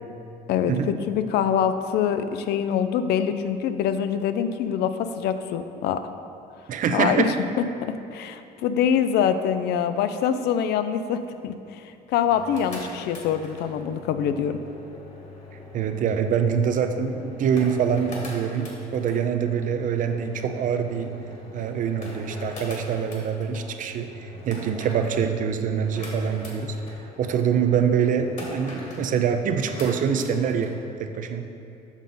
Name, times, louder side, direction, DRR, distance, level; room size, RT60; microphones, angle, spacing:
voice 1, 0.5-6.0 6.9-7.3 8.1-11.8 12.1-14.6, left 8 dB, 75° left, 10 dB, 0.4 m, -24 dB
voice 2, 6.7-7.3 15.7-21.1 21.5-26.8 27.2-31.4, right 7 dB, 50° right, 7 dB, 0.5 m, -25 dB
sound 1, 12.2-30.7, left 2 dB, 45° left, 1.6 m, -42 dB
7.2 x 5.3 x 3.8 m, 2.7 s
cardioid pair, 110°, 17 cm